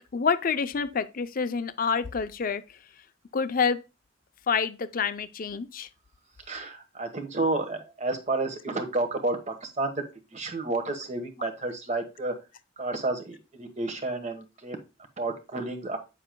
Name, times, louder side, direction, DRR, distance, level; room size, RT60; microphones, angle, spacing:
voice 1, 0.0-2.6 3.3-3.8 4.5-5.9, left 5 dB, 45° left, 0.5 m, -27 dB
voice 2, 6.5-9.9 10.3-12.3 12.8-14.8 15.2-16.0, right 2 dB, 40° right, 1.2 m, -31 dB
9.1 x 6.7 x 2.2 m
head